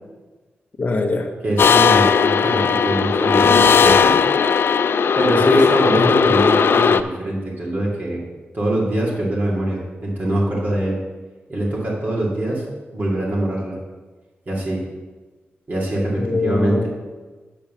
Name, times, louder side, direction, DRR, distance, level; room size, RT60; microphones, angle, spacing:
voice 1, 0.8-1.3 5.4-5.7 5.9-6.3 16.2-16.9, left 2 dB, 45° left, 2 dB, 1.0 m, -20 dB
voice 2, 1.4-4.2 5.2-8.2 8.5-11.0 11.5-12.6 12.9-13.8 14.5-14.8 15.7-16.9, right 1 dB, 45° right, -5 dB, 2.5 m, -23 dB
sound 1, 1.6-7.0, left 6 dB, 65° left, 0.4 m, -16 dB
8.4 x 5.6 x 6.3 m, 1.3 s
wide cardioid pair, 85°, 4 cm